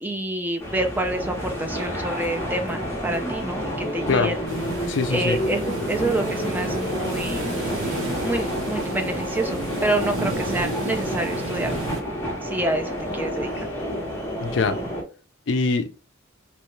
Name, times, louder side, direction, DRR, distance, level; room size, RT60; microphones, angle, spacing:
voice 1, 0.0-4.4 5.1-7.5 8.2-11.7 12.4-13.5, right 1 dB, 10° right, 0.3 m, -28 dB
sound 1, 0.6-15.0, equal, 10° left, 0.9 m, -29 dB
sound 2, 4.5-12.0, right 1 dB, 70° right, 0.9 m, -32 dB
voice 2, 4.9-5.4 14.4-14.8 15.5-16.0, left 4 dB, 60° left, 0.4 m, -23 dB
3.0 x 2.3 x 3.0 m
head